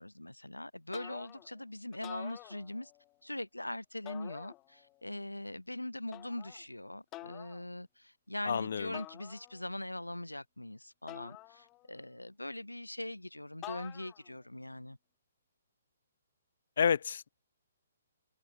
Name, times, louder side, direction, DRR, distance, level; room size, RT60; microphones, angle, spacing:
voice 1, 0.0-2.9 3.2-15.0, left 1 dB, 85° left, 1.2 m, -42 dB
sound 1, 0.9-1.6 1.9-3.1 4.1-5.0 6.1-6.6 7.1-7.6 8.9-9.8 11.1-12.1 13.6-14.4, left 19 dB, 20° left, 6.9 m, -49 dB
voice 2, 8.5-8.9 16.8-17.3, left 7 dB, 50° left, 1.5 m, -29 dB
figure-of-eight pair, 130°, 0 cm